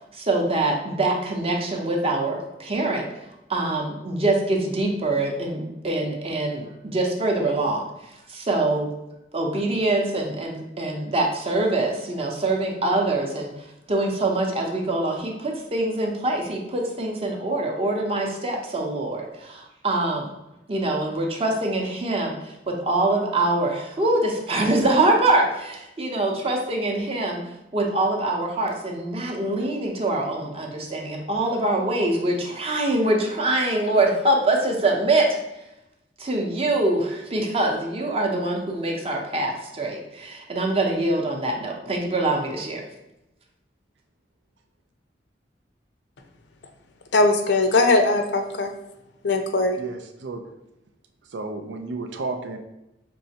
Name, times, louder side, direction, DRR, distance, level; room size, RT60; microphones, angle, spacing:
voice 1, 0.1-3.1 3.5-7.9 8.3-8.9 9.3-20.3 20.7-27.4 27.7-35.3 36.2-42.8, right 2 dB, 35° right, 1 dB, 0.7 m, -24 dB
voice 2, 47.1-48.7 49.2-49.8, left 2 dB, 75° left, 5 dB, 0.6 m, -20 dB
voice 3, 49.8-50.4 51.3-52.6, right 3 dB, 75° right, 5 dB, 0.5 m, -32 dB
5.4 x 3.1 x 2.8 m, 0.91 s
head